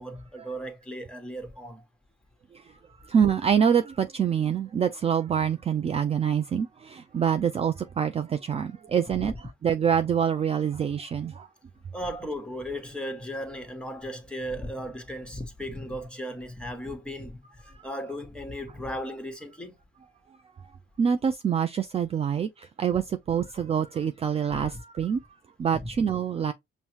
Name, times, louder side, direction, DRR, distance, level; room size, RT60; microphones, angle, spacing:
voice 1, 0.0-1.8 9.2-9.4 11.9-19.8 24.5-24.8 25.8-25.9, equal, 5° left, 1.1 m, -36 dB
voice 2, 3.0-9.3 9.6-11.5 21.0-25.2 25.6-26.5, right 8 dB, 30° right, 0.4 m, -26 dB
5.4 x 2.1 x 2.9 m
cardioid pair, 90°, 20 cm